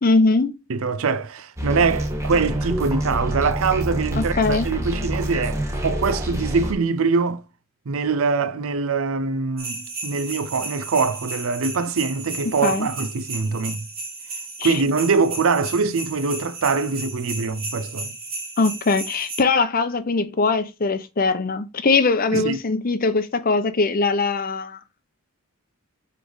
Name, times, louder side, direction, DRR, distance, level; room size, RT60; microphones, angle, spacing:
voice 1, 0.0-0.6 4.1-4.7 12.5-12.9 14.6-14.7 18.6-24.8, left 3 dB, 40° left, 0.7 m, -21 dB
voice 2, 0.7-7.4 7.9-13.9 14.6-18.2 22.3-22.6, right 4 dB, 70° right, 0.5 m, -23 dB
sound 1, 1.6-6.7, right 1 dB, 15° right, 1.2 m, -27 dB
sound 2, 9.6-19.4, right 3 dB, 45° right, 3.0 m, -34 dB
8.1 x 3.3 x 3.9 m
head